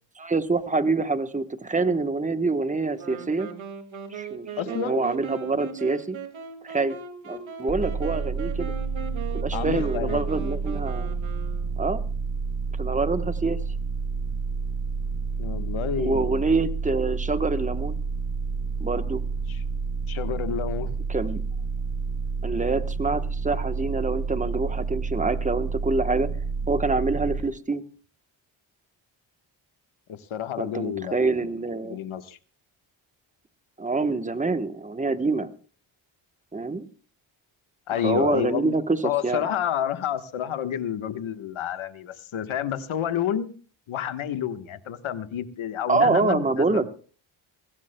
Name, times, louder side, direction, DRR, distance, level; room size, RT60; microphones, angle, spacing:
voice 1, 0.2-3.5 4.1-6.2 6.6-7.0 7.2-8.7 9.3-11.2 11.8-12.0 12.8-13.6 16.0-18.0 18.8-19.2 21.1-21.4 22.4-26.3 26.7-27.8 30.6-32.0 33.8-35.5 36.5-36.9 38.0-39.5 45.9-46.8, right 3 dB, 15° right, 11 dB, 1.0 m, -26 dB
Wind instrument woodwind instrument, 3.0-12.0, right 6 dB, 75° right, 2.2 m, -38 dB
voice 2, 4.6-5.0 9.5-10.2 15.4-16.4 19.5-19.6 20.1-20.9 30.1-31.2 31.8-32.4 37.9-38.7 39.0-43.5 43.9-46.9, left 9 dB, 80° left, 10 dB, 1.3 m, -29 dB
sound 1, 7.7-27.4, right 5 dB, 35° right, 5.8 m, -29 dB
23.0 x 16.5 x 2.2 m, 0.39 s
cardioid pair, 100°, 48 cm